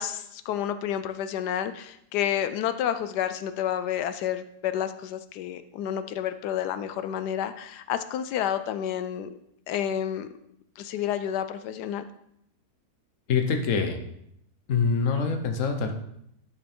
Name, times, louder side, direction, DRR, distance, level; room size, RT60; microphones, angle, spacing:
voice 1, 0.0-9.3 9.7-10.3 10.8-12.0, left 10 dB, 85° left, 11 dB, 1.2 m, -30 dB
voice 2, 13.3-14.0 14.7-15.9, left 5 dB, 55° left, 6 dB, 1.3 m, -25 dB
11.5 x 5.3 x 4.4 m, 0.75 s
omnidirectional pair, 1.7 m